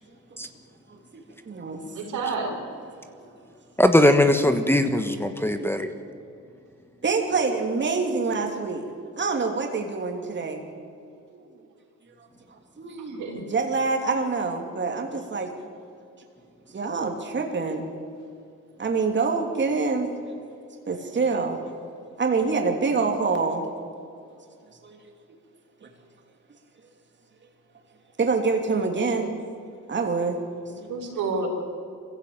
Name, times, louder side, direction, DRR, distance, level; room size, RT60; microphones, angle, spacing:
voice 1, 0.9-1.8 3.2-3.3 5.3-5.7 7.0-8.9 9.2-10.6 11.3-11.4 12.8-13.2 13.5-15.5 16.7-17.9 18.8-20.1 20.9-21.6 22.2-23.6 24.8-25.1 25.8-25.9 28.2-29.3 29.9-30.4 30.8-30.9, right 4 dB, 40° right, 2 dB, 3.0 m, -26 dB
voice 2, 1.9-2.5 13.0-13.4 30.9-31.5, right 4 dB, 90° right, -1 dB, 5.5 m, -29 dB
voice 3, 3.8-5.9, left 1 dB, 10° left, 8 dB, 1.3 m, -20 dB
23.0 x 15.5 x 8.9 m, 2.5 s
cardioid pair, 90°, 30 cm